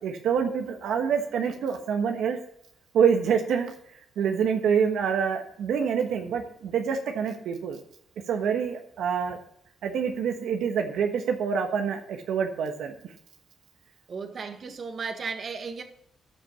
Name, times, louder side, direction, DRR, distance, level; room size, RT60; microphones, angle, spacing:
voice 1, 0.0-2.4 2.9-3.7 4.2-7.8 8.3-9.4 9.8-12.9, right 7 dB, 75° right, 1.2 m, -26 dB
voice 2, 14.1-15.8, right 5 dB, 45° right, 1.6 m, -35 dB
13.5 x 5.3 x 7.1 m
cardioid pair, 90°, 0 cm